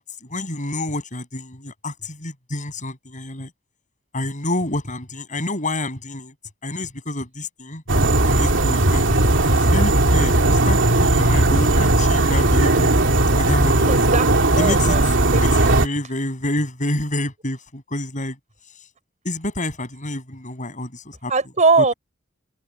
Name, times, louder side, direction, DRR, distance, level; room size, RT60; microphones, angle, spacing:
voice 1, 0.0-3.5 4.1-6.3 6.6-7.8 8.3-10.3 10.6-12.9 13.4-13.9 14.6-15.0 15.3-18.4 19.2-21.3, left 1 dB, 40° left, 7.3 m, -28 dB
sound 1, 7.9-15.9, right 2 dB, 65° right, 2.9 m, -17 dB
voice 2, 13.9-14.3 14.6-15.0 15.3-15.4 21.3-21.9, right 4 dB, 40° right, 5.2 m, -19 dB
head